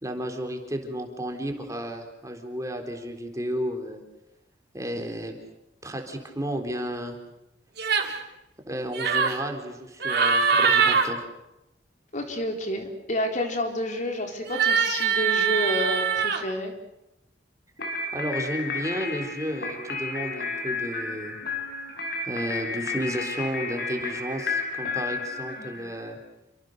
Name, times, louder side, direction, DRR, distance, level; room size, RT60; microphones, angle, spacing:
voice 1, 0.0-4.0 4.7-5.4 5.8-7.2 8.7-11.2 18.1-21.4 22.3-26.2, equal, 20° right, 4 dB, 4.1 m, -32 dB
sound 1, 7.8-8.2 8.9-9.4 10.0-11.1 14.4-16.4, right 6 dB, 60° right, 3.5 m, -22 dB
voice 2, 12.1-16.7, left 1 dB, 40° left, 3 dB, 4.1 m, -29 dB
sound 2, 17.8-26.1, left 4 dB, 60° left, 6.1 m, -32 dB
29.5 x 26.0 x 6.7 m, 0.92 s
head